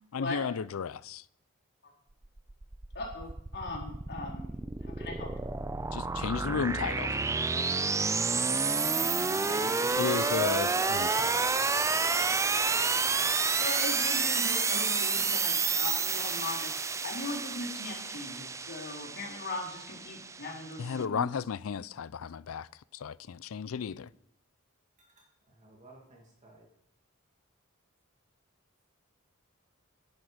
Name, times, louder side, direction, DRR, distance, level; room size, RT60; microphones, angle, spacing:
voice 1, 0.1-1.2 5.9-7.2 10.0-11.4 20.8-24.1, left 6 dB, 80° left, 0.4 m, -34 dB
sound 1, 2.2-21.0, right 4 dB, 15° right, 0.4 m, -30 dB
voice 2, 2.9-4.6 4.9-5.3 9.5-10.4 13.5-16.7 17.0-21.2, left 2 dB, 55° left, 4.3 m, -39 dB
voice 3, 25.6-26.7, right 1 dB, 35° right, 2.2 m, -54 dB
13.5 x 10.5 x 5.1 m
head